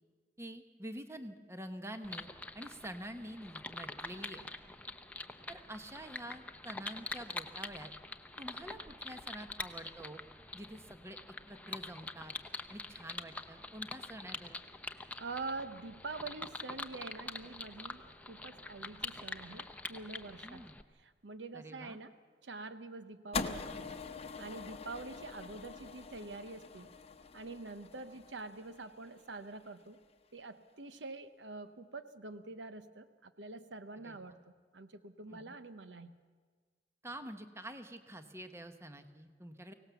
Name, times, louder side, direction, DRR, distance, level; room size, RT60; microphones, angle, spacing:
voice 1, 0.4-2.3 2.5-4.4 5.5-7.9 8.4-10.2 10.5-11.2 11.5-12.3 12.7-14.6 20.4-20.8 21.5-22.0 34.0-34.4 35.3-35.6 37.0-39.7, right 1 dB, 15° right, 8 dB, 1.1 m, -47 dB
sound 1, 2.0-20.8, left 2 dB, 10° left, 0.8 m, -45 dB
voice 2, 15.2-20.6 20.9-22.1 22.4-23.9 24.4-26.9 27.3-30.0 30.3-34.4 34.7-36.2, right 3 dB, 75° right, 11 dB, 0.9 m, -46 dB
sound 2, 23.3-29.7, left 4 dB, 35° left, 0.9 m, -43 dB
24.0 x 17.5 x 7.0 m, 1.5 s
head